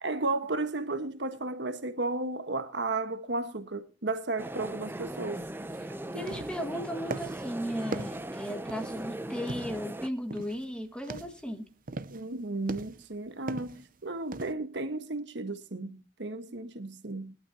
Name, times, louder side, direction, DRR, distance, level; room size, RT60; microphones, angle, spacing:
voice 1, 0.0-5.4 6.1-6.3 12.1-17.3, right 2 dB, 65° right, 1.3 m, -34 dB
sound 1, 4.4-10.1, right 1 dB, 10° right, 0.6 m, -39 dB
sound 2, 5.7-5.8 6.1-6.7 7.1-7.5 7.9-9.1 9.5-9.9 10.3-10.7 11.0-11.4 11.9-12.3 12.7-13.1 13.5-13.9 14.3-14.5, right 3 dB, 50° right, 0.7 m, -39 dB
voice 2, 6.1-11.6, equal, 5° left, 1.8 m, -36 dB
20.5 x 12.0 x 2.8 m
head